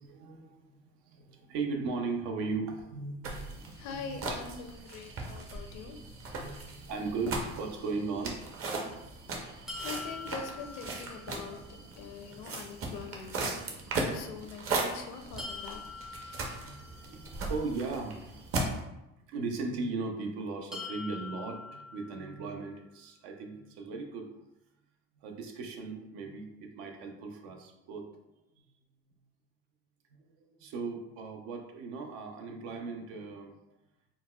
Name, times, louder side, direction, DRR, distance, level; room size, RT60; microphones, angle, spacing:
voice 1, 0.0-4.2 6.4-8.4 8.8-9.9 16.6-24.3 25.2-28.1 28.6-28.7 29.1-29.2 30.2-33.6, right 4 dB, 85° right, 3 dB, 0.6 m, -38 dB
sound 1, 3.2-18.8, right 3 dB, 50° right, 0.7 m, -38 dB
voice 2, 3.7-6.0 9.5-13.5 14.1-15.8, left 5 dB, 70° left, 4 dB, 0.5 m, -43 dB
sound 2, 9.7-11.6 15.4-17.4 20.7-22.7, left 4 dB, ahead, 0.4 m, -44 dB
3.9 x 2.1 x 2.3 m, 0.90 s
supercardioid pair, 90°, 29 cm